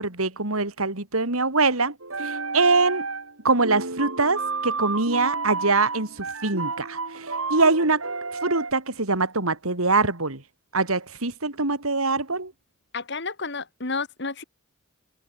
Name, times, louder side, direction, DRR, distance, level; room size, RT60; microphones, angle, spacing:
voice 1, 0.0-3.1 3.4-8.1 8.4-10.4 10.7-12.5, right 3 dB, 90° right, 3.8 m, -23 dB
sound 1, 2.0-3.4 3.6-8.7, right 4 dB, 75° right, 6.2 m, -31 dB
voice 2, 12.9-14.4, left 4 dB, 55° left, 2.8 m, -31 dB
head